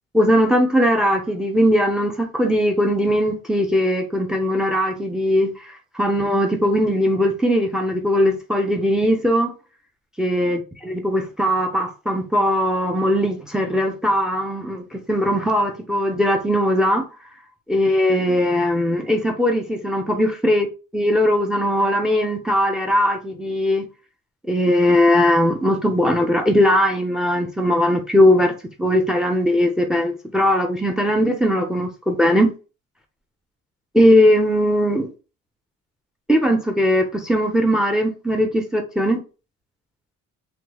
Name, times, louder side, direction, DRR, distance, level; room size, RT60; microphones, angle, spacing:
voice 1, 0.1-9.5 10.2-17.1 17.7-20.7 20.9-23.8 24.5-28.5 28.8-32.5 33.9-35.1 36.3-39.2, equal, ahead, 0.7 m, -19 dB
3.5 x 2.3 x 3.0 m
cardioid pair, 90°, 30 cm